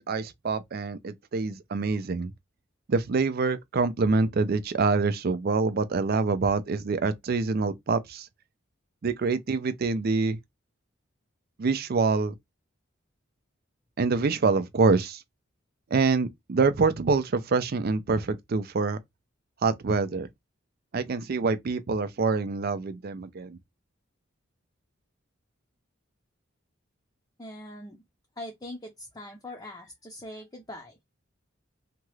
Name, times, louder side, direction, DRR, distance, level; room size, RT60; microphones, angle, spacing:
voice 1, 0.0-2.3 2.9-8.3 9.0-10.4 11.6-12.3 14.0-15.2 15.9-19.0 19.6-20.3 20.9-23.6, right 4 dB, 50° right, 0.4 m, -26 dB
voice 2, 27.4-28.0 28.4-31.0, left 1 dB, 20° left, 0.6 m, -42 dB
2.9 x 2.3 x 3.1 m
head